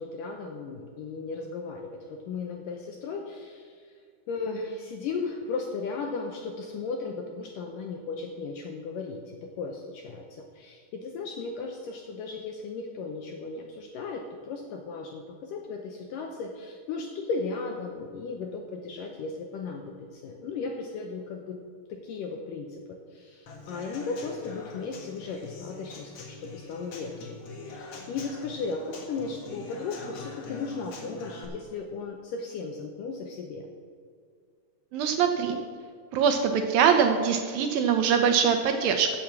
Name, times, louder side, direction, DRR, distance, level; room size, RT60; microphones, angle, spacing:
voice 1, 0.0-3.9 4.3-21.6 21.9-27.4 27.7-33.7, left 4 dB, 75° left, 2 dB, 2.0 m, -36 dB
Human voice / Acoustic guitar / Drum, 23.5-31.4, left 4 dB, 55° left, 1.9 m, -43 dB
voice 2, 34.9-35.6 36.1-39.1, right 7 dB, 75° right, 5 dB, 2.3 m, -23 dB
15.0 x 7.0 x 6.0 m, 2.1 s
omnidirectional pair, 4.8 m